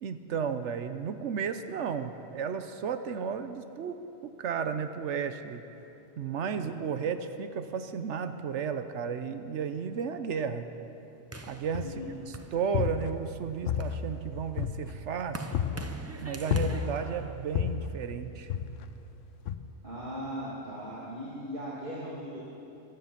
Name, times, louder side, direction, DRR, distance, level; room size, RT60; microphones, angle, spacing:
voice 1, 0.0-4.0 4.4-5.6 6.2-10.7 11.5-11.9 12.5-15.5 16.2-18.5, right 6 dB, 75° right, 9 dB, 1.0 m, -33 dB
voice 2, 6.5-6.8 11.8-12.3 19.8-22.4, equal, 45° right, -8 dB, 2.2 m, -39 dB
sound 1, 11.3-13.1 13.6-18.2, right 2 dB, 20° right, 0.5 m, -44 dB
sound 2, 11.8-12.2 12.6-13.4 13.7-15.1 15.5-16.0 16.5-17.1 17.5-18.0 18.5-19.0 19.5-19.6, left 8 dB, 85° left, 1.0 m, -31 dB
15.0 x 13.0 x 5.8 m, 2.9 s
omnidirectional pair, 1.2 m